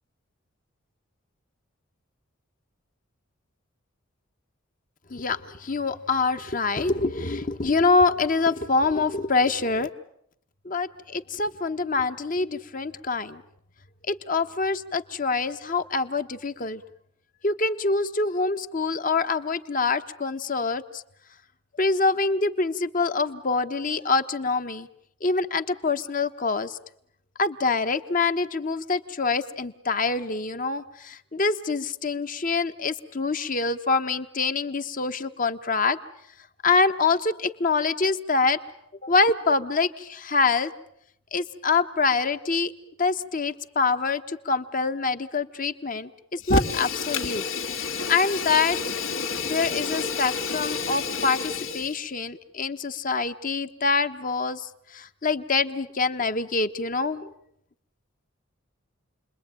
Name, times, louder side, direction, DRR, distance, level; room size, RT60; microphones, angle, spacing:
voice 1, 5.1-9.9 10.6-13.4 14.1-16.8 17.4-21.0 21.8-24.9 25.2-26.8 27.4-36.0 36.6-38.6 39.0-40.7 41.3-42.7 43.0-47.5 47.8-48.8 49.4-57.3, left 4 dB, 40° left, 9 dB, 1.2 m, -25 dB
Fire, 46.4-52.0, left 4 dB, 80° left, 2.5 m, -29 dB
30.0 x 22.0 x 9.0 m, 0.72 s
head